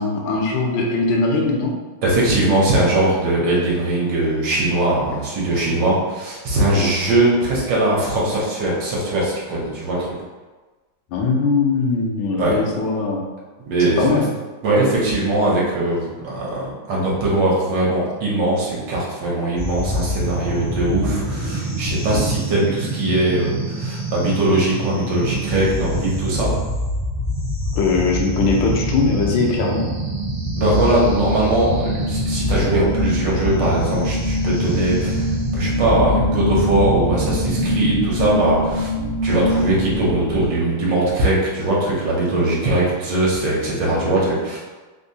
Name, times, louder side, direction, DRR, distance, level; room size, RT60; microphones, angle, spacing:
voice 1, 0.0-1.7 11.1-13.2 13.8-14.3 27.7-29.9 43.9-44.1, left 3 dB, 75° left, 0 dB, 1.3 m, -20 dB
voice 2, 2.0-10.1 12.4-12.6 13.7-14.0 14.6-26.5 30.6-38.9 39.2-44.6, right 2 dB, 65° right, -5 dB, 1.4 m, -20 dB
sound 1, 19.6-38.1, equal, 80° right, 0.3 m, -26 dB
sound 2, 28.0-40.5, left 1 dB, 40° left, 0.6 m, -26 dB
3.6 x 2.7 x 2.7 m, 1.3 s
omnidirectional pair, 2.3 m